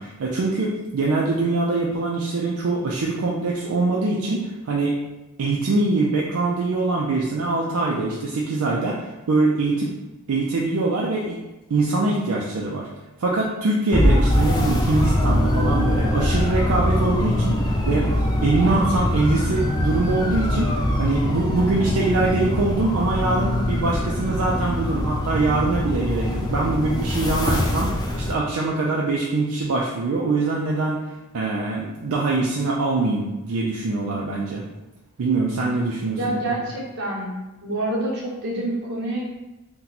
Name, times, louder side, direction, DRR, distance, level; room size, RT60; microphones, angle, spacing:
voice 1, 0.0-5.0 5.4-9.9 10.3-11.4 11.7-12.9 13.2-18.1 18.4-34.6 35.2-36.4, right 3 dB, 70° right, -3 dB, 0.4 m, -23 dB
sound 1, 13.9-28.3, left 1 dB, 20° left, 0.3 m, -22 dB
voice 2, 36.2-37.3 37.6-39.2, right 1 dB, 50° right, -5 dB, 1.0 m, -27 dB
2.9 x 2.2 x 3.9 m, 1.0 s
head